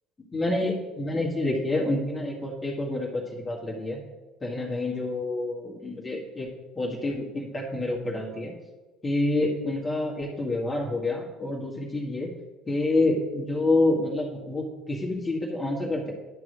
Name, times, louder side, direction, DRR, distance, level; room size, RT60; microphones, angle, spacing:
voice 1, 0.3-4.0 4.4-6.5 6.8-8.5 9.0-12.3 12.7-16.1, left 2 dB, 20° left, -2 dB, 2.0 m, -28 dB
10.5 x 4.9 x 5.0 m, 1.2 s
figure-of-eight pair, 60°, 0 cm